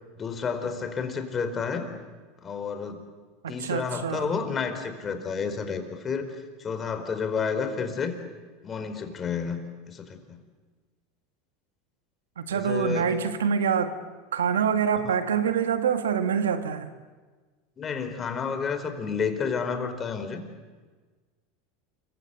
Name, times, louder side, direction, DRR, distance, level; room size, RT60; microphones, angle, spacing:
voice 1, 0.1-1.9 2.4-3.1 3.5-6.3 6.6-8.2 8.6-9.6 9.9-10.4 12.5-13.1 15.0-15.2 17.8-20.4, left 6 dB, 30° left, 4.6 m, -30 dB
voice 2, 3.6-4.4 12.4-14.0 14.3-16.9, right 7 dB, 90° right, 1.8 m, -25 dB
28.5 x 24.5 x 8.3 m
hypercardioid pair, 95°, 0 cm